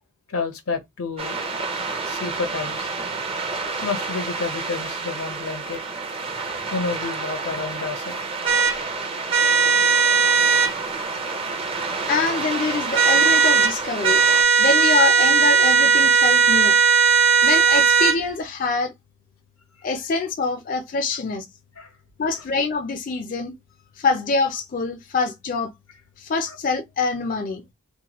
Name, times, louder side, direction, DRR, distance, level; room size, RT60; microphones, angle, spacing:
voice 1, 0.3-1.5 1.9-2.9 3.8-5.8 6.7-8.2 11.2-11.5 21.1-21.2 21.8-21.9 26.5-26.6, left 4 dB, 80° left, 0.7 m, -30 dB
sound 1, 1.2-14.4, right 4 dB, 25° right, 0.5 m, -30 dB
sound 2, 8.5-8.7 9.3-10.7 12.9-13.7 14.0-18.2, right 5 dB, 55° right, 0.8 m, -17 dB
voice 2, 12.1-14.2 14.6-16.8 17.4-18.9 19.8-21.5 22.2-23.5 24.0-25.7 26.2-27.6, left 4 dB, 40° left, 0.4 m, -25 dB
2.8 x 2.2 x 2.9 m
head